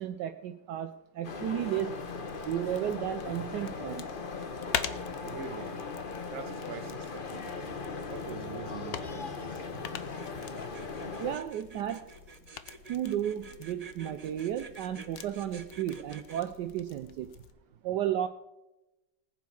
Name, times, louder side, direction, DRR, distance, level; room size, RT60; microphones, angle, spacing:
voice 1, 0.0-2.1 2.4-4.1 11.2-12.1 12.9-17.3 17.8-18.3, right 11 dB, 70° right, 1.2 m, -33 dB
sound 1, 1.2-11.4, left 4 dB, 35° left, 1.0 m, -39 dB
sound 2, 1.7-17.5, left 9 dB, 80° left, 1.5 m, -44 dB
voice 2, 5.1-5.9 6.3-7.6 8.1-10.4, right 6 dB, 50° right, 1.3 m, -44 dB
sound 3, 10.2-16.4, right 4 dB, 35° right, 0.6 m, -49 dB
19.0 x 9.4 x 4.7 m
omnidirectional pair, 2.0 m